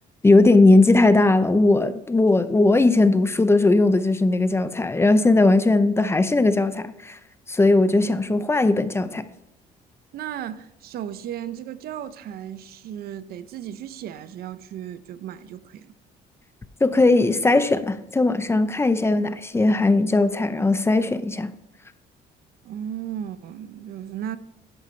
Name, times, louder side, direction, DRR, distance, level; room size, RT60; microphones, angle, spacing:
voice 1, 0.2-7.2 7.5-9.3 16.8-21.5, left 2 dB, 15° left, 0.6 m, -18 dB
voice 2, 10.1-15.9 22.6-24.4, right 10 dB, 65° right, 0.7 m, -35 dB
12.0 x 10.5 x 3.3 m
cardioid pair, 110°, 17 cm